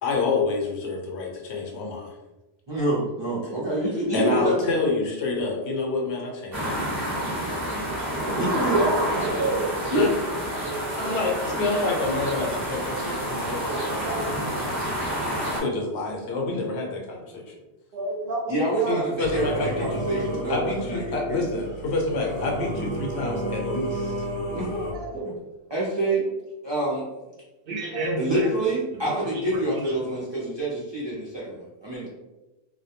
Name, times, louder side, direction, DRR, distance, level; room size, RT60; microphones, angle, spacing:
voice 1, 0.0-2.1 4.1-7.0 9.9-10.1 11.0-14.8 15.6-17.5 18.9-24.3, left 3 dB, 80° left, 0 dB, 0.9 m, -28 dB
voice 2, 2.7-4.7 8.3-9.0 9.9-10.1 18.5-21.7 24.5-25.3 25.7-26.3 26.6-27.1 28.2-32.1, right 1 dB, 40° right, -7 dB, 0.4 m, -27 dB
sound 1, 6.5-15.6, equal, 20° right, 0.9 m, -28 dB
voice 3, 17.9-18.5 18.8-19.0 24.9-25.3 27.7-28.5, right 2 dB, 65° right, 0 dB, 0.7 m, -29 dB
Singing / Musical instrument, 19.2-24.9, right 1 dB, 45° left, 0.5 m, -32 dB
2.2 x 2.2 x 2.7 m, 1.0 s
omnidirectional pair, 1.1 m